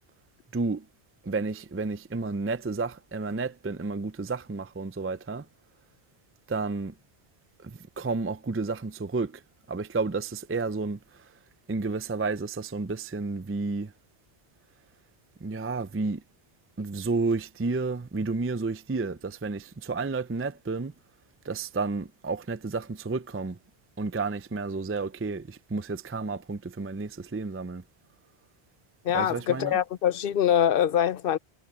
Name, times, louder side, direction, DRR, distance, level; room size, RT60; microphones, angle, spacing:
voice 1, 0.5-0.9 1.2-5.5 6.5-6.9 7.6-9.4 9.7-11.3 11.7-13.9 15.4-16.2 16.8-20.9 21.4-23.6 24.0-27.8 29.1-29.8, right 3 dB, 20° right, 0.3 m, -31 dB
voice 2, 29.1-31.4, left 9 dB, 60° left, 0.8 m, -24 dB
omnidirectional pair, 1.1 m